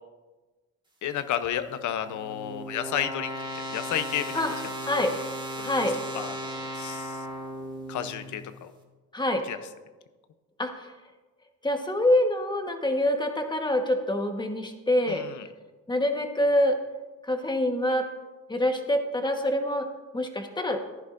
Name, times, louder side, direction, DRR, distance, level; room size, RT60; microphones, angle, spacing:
voice 1, 1.0-3.3 3.7-4.3 5.6-5.7 6.1-7.2 7.9-8.7 9.5-9.6 15.1-15.4, left 10 dB, 75° left, 10 dB, 0.8 m, -32 dB
sound 1, 1.4-8.6, equal, 15° right, 1.8 m, -37 dB
voice 2, 5.6-6.0 9.1-9.4 10.6-10.9 11.6-15.2 15.9-16.8 17.2-18.1 18.5-19.9 20.1-20.8, left 1 dB, 15° left, 4 dB, 1.3 m, -25 dB
14.0 x 10.5 x 2.6 m, 1.2 s
cardioid pair, 90°, 30 cm